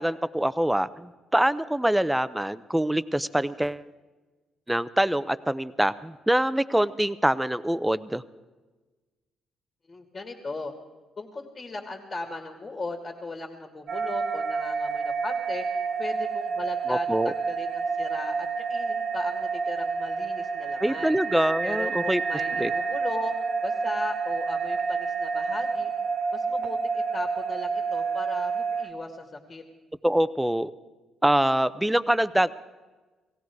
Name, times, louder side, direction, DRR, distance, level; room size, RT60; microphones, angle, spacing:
voice 1, 0.0-3.8 4.7-8.2 16.9-17.3 20.8-22.2 22.6-22.7 30.0-30.7 31.2-32.5, right 1 dB, 5° right, 15 dB, 0.6 m, -24 dB
voice 2, 9.9-10.7 11.2-15.6 16.0-21.1 21.6-23.3 23.6-25.9 26.3-29.6, left 3 dB, 40° left, 3 dB, 2.2 m, -37 dB
sound 1, 13.9-28.9, right 5 dB, 65° right, 1.4 m, -29 dB
18.5 x 16.5 x 4.7 m, 1.3 s
supercardioid pair, 70°, 0 cm